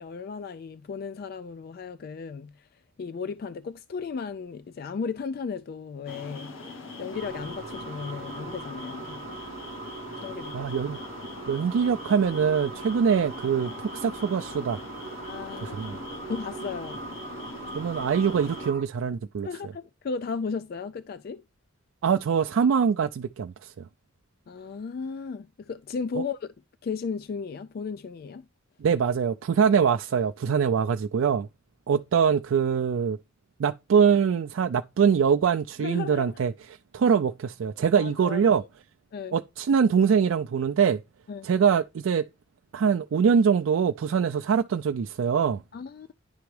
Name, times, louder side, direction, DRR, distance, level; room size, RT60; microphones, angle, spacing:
voice 1, 0.0-2.7 3.0-9.2 10.2-10.7 15.2-17.0 19.4-21.4 24.5-26.5 26.8-28.5 35.8-36.4 38.0-38.7 39.1-39.4 41.3-41.5 45.7-46.1, left 5 dB, 50° left, 0.3 m, -35 dB
sound 1, 6.1-18.7, left 3 dB, 90° left, 1.0 m, -41 dB
sound 2, 7.1-18.8, right 4 dB, 45° right, 1.0 m, -41 dB
voice 2, 10.5-11.0 11.5-14.8 15.6-16.0 17.7-19.5 22.0-23.8 28.8-31.5 31.9-33.2 33.6-36.5 36.9-38.6 39.3-41.0 41.4-42.2 42.7-45.6, right 6 dB, 85° right, 0.4 m, -23 dB
10.5 x 3.4 x 3.2 m
head